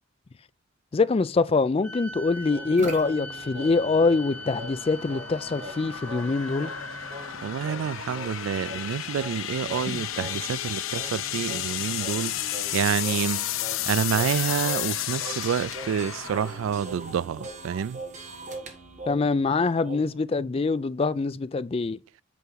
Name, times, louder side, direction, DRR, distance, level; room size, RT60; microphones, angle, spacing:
voice 1, 0.9-6.7 9.9-10.0 19.1-22.0, left 4 dB, 30° left, 0.3 m, -24 dB
sound 1, 1.8-9.3, equal, 5° left, 1.7 m, -42 dB
sound 2, 2.0-17.4, left 12 dB, 80° left, 0.6 m, -33 dB
sound 3, 2.5-19.5 19.8-20.2, right 2 dB, 35° right, 1.3 m, -42 dB
voice 2, 7.4-12.4 12.7-13.5 13.9-18.0, right 8 dB, 75° right, 0.3 m, -28 dB
8.3 x 4.6 x 4.0 m
head